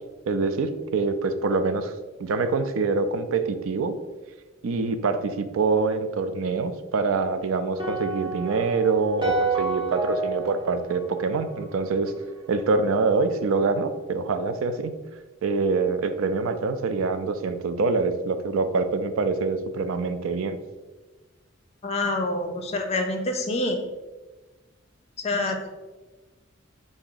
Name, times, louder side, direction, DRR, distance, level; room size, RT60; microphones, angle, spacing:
voice 1, 0.3-1.9 2.2-3.9 4.6-12.1 12.5-14.9 15.4-20.6, right 4 dB, 75° right, 9 dB, 0.4 m, -25 dB
sound 1, 7.8-12.1, right 3 dB, 25° right, 0.8 m, -29 dB
voice 2, 21.8-23.8 25.2-25.7, left 2 dB, 30° left, 4 dB, 0.5 m, -27 dB
4.7 x 2.6 x 3.8 m, 1.2 s
head